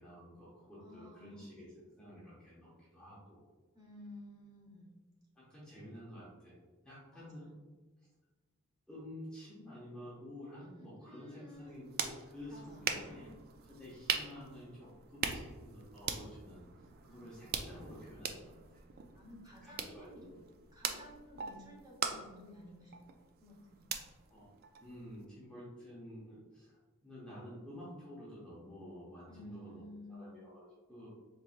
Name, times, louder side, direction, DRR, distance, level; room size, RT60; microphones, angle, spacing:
voice 1, 0.0-1.7 2.0-3.4 5.4-6.6 6.8-7.4 8.9-13.3 13.6-18.8 19.6-20.2 24.3-24.5 24.8-29.8 30.1-31.1, left 1 dB, 5° left, -9 dB, 0.7 m, -51 dB
voice 2, 0.8-1.4 3.7-4.9 7.1-7.5 10.6-10.7 11.0-11.8 12.5-13.0 19.1-20.3 20.7-23.8 29.3-30.3, left 1 dB, 20° right, -5 dB, 1.1 m, -53 dB
sound 1, 11.5-25.3, right 6 dB, 45° right, 0.3 m, -42 dB
4.1 x 3.1 x 2.4 m, 1.3 s
head